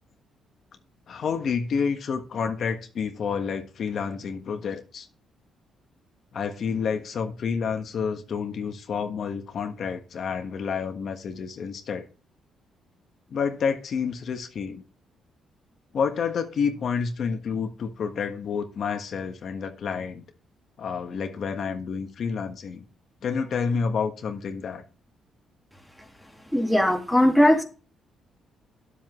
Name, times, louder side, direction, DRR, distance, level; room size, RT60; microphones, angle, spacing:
voice 1, 1.1-5.1 6.3-12.1 13.3-14.8 15.9-20.2 20.8-22.8 23.2-24.8, left 6 dB, 60° left, 1.4 m, -29 dB
voice 2, 26.5-27.6, equal, ahead, 2.0 m, -19 dB
10.5 x 7.8 x 3.1 m
cardioid pair, 90°, 0 cm